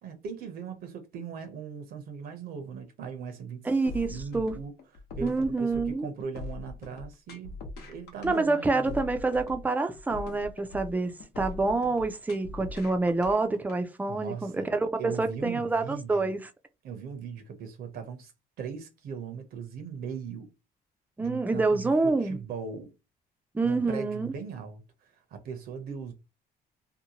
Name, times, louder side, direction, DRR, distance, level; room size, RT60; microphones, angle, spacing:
voice 1, 0.0-3.7 4.1-4.7 5.1-7.6 7.9-9.0 14.1-14.7 15.0-16.3 16.8-18.3 18.6-20.5 21.2-22.9 23.6-24.8 25.3-26.1, right 6 dB, 65° right, 0.7 m, -39 dB
voice 2, 3.6-4.6 5.2-6.1 8.2-16.5 21.2-22.4 23.5-24.3, right 3 dB, 10° right, 0.4 m, -27 dB
sound 1, 3.9-13.8, left 3 dB, 70° left, 0.9 m, -41 dB
2.7 x 2.1 x 2.8 m
cardioid pair, 110°, 17 cm